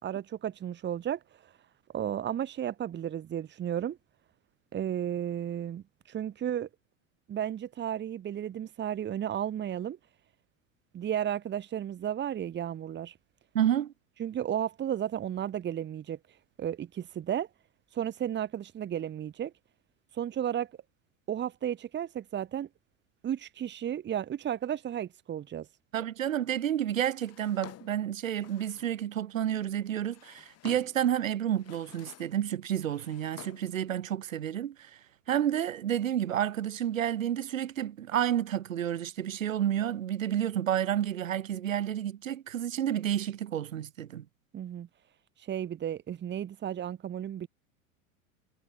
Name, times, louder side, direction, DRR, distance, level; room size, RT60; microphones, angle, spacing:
voice 1, 0.0-1.5 1.9-4.0 4.7-6.7 7.3-10.0 10.9-13.1 14.2-16.2 16.6-17.5 17.9-19.5 20.1-20.7 21.3-22.7 23.2-25.7 44.5-44.9 45.4-47.5, right 10 dB, 25° right, 3.3 m, -33 dB
voice 2, 13.5-13.9 25.9-35.0 35.3-44.3, right 10 dB, 65° right, 2.1 m, -30 dB
Drawer open or close, 27.2-29.0 29.8-31.1 31.5-32.4 32.7-33.8, left 15 dB, 35° left, 6.6 m, -51 dB
figure-of-eight pair, 85°, 42 cm